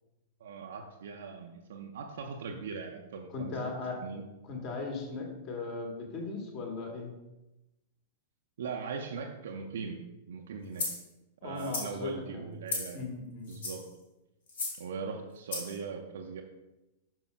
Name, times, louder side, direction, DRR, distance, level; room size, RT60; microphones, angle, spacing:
voice 1, 0.4-3.6 4.0-4.2 8.6-10.0 10.3-10.9 11.4-13.0 13.5-13.8 14.8-16.4, right 5 dB, 60° right, 2 dB, 0.6 m, -40 dB
voice 2, 3.3-4.0 4.5-7.1 11.4-12.5 12.9-13.6, left 3 dB, 35° left, 1 dB, 1.6 m, -38 dB
sound 1, 10.8-11.0 11.6-11.9 12.7-13.0 13.5-13.9 14.5-14.8 15.5-15.8, left 3 dB, 60° left, 1.9 m, -35 dB
12.0 x 5.5 x 2.2 m, 0.97 s
figure-of-eight pair, 95°, 0 cm